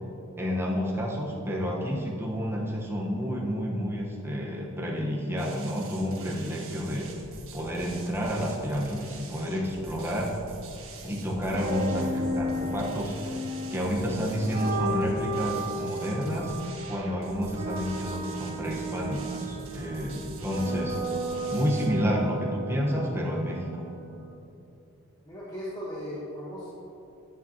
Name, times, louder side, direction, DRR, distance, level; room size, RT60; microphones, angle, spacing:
voice 1, 0.4-7.1 7.5-10.3 11.0-16.6 16.9-21.0 21.5-23.9, equal, 10° right, -3 dB, 1.2 m, -30 dB
sound 1, 5.4-21.9, right 3 dB, 75° right, 1.6 m, -45 dB
sound 2, 11.4-24.3, right 1 dB, 30° right, 0.9 m, -34 dB
voice 2, 25.3-26.7, equal, 15° left, -8 dB, 1.2 m, -37 dB
10.0 x 9.2 x 2.9 m, 2.9 s
head